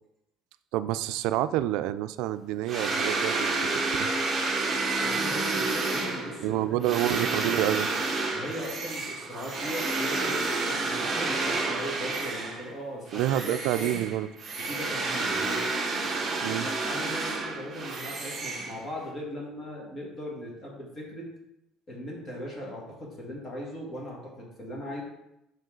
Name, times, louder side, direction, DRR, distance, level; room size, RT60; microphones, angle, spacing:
voice 1, 0.7-4.1 6.4-7.9 13.1-14.3 16.4-16.7, right 13 dB, 70° right, 13 dB, 0.3 m, -28 dB
sound 1, 2.7-12.7 13.1-19.1, right 3 dB, 20° right, 1.1 m, -30 dB
voice 2, 5.0-6.8 8.3-14.1 14.6-15.6 16.6-21.2 21.9-25.0, equal, 25° left, -2 dB, 1.7 m, -38 dB
5.6 x 5.3 x 3.8 m, 0.88 s
cardioid pair, 160°, 0 cm